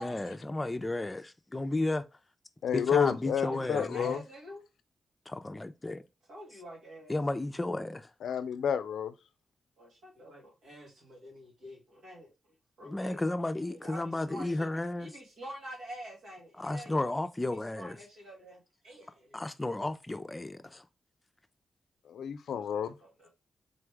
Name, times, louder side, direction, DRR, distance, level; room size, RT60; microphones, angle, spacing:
voice 1, 0.0-2.1 2.7-4.2 5.3-6.0 7.1-8.1 12.8-15.1 16.6-18.0 19.3-20.9, left 2 dB, 25° left, 0.5 m, -33 dB
voice 2, 2.6-4.2 8.2-9.1 22.1-23.0, left 8 dB, 85° left, 0.4 m, -30 dB
voice 3, 3.4-4.6 6.3-7.2 9.8-12.3 12.8-13.2 13.7-14.7 15.0-17.2 17.5-19.4 22.5-22.6 23.0-23.3, right 1 dB, 90° right, 2.1 m, -46 dB
3.9 x 3.5 x 3.4 m
cardioid pair, 60°, 0 cm